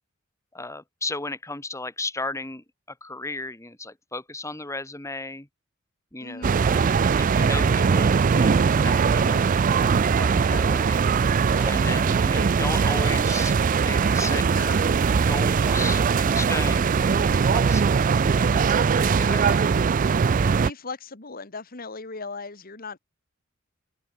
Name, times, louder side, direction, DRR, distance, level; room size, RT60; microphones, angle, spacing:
voice 1, 0.5-5.5 6.1-6.9 7.2-11.0 11.6-13.5 13.8-18.6 18.9-19.7, left 2 dB, 15° left, 2.2 m, -35 dB
voice 2, 6.2-6.6 18.4-18.6 20.1-23.0, left 4 dB, 45° left, 1.8 m, -38 dB
sound 1, 6.4-20.7, right 5 dB, 40° right, 0.4 m, -21 dB
sound 2, 11.5-12.4 15.6-16.3 19.4-20.0, right 1 dB, 5° right, 3.1 m, -43 dB
open air
head